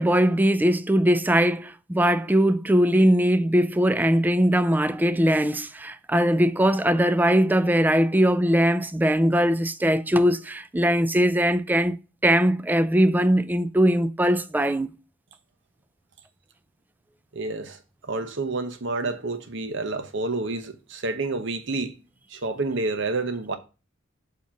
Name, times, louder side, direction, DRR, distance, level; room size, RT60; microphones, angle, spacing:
voice 1, 0.0-12.0 12.2-14.9, equal, 10° right, 0.3 m, -21 dB
voice 2, 17.3-17.8 18.1-22.0 22.3-23.6, right 3 dB, 65° right, 0.9 m, -29 dB
7.1 x 2.9 x 5.7 m
head